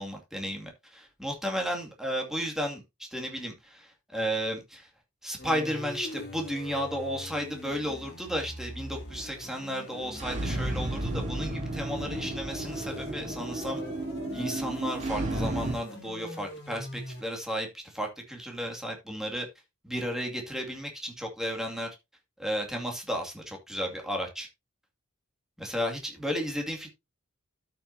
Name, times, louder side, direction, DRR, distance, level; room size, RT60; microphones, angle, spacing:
voice 1, 0.0-4.9 5.2-13.8 14.3-19.5 19.8-22.0 22.4-24.5 25.6-26.9, equal, ahead, 2.3 m, -33 dB
sound 1, 5.4-17.2, equal, 55° left, 2.7 m, -43 dB
sound 2, 10.2-15.7, right 1 dB, 35° right, 3.0 m, -33 dB
12.5 x 6.0 x 2.8 m
head